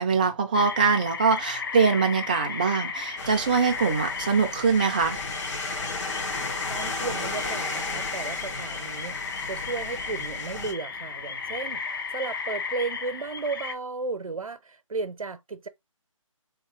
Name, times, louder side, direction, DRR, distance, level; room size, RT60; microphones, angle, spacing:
voice 1, 0.0-5.2, right 5 dB, 15° right, 0.4 m, -23 dB
sound 1, 0.5-13.8, left 5 dB, 40° left, 0.6 m, -34 dB
sound 2, 3.2-10.7, left 3 dB, 60° left, 1.9 m, -35 dB
voice 2, 6.7-15.7, right 4 dB, 80° right, 0.7 m, -34 dB
3.6 x 2.8 x 3.1 m
figure-of-eight pair, 155°, 17 cm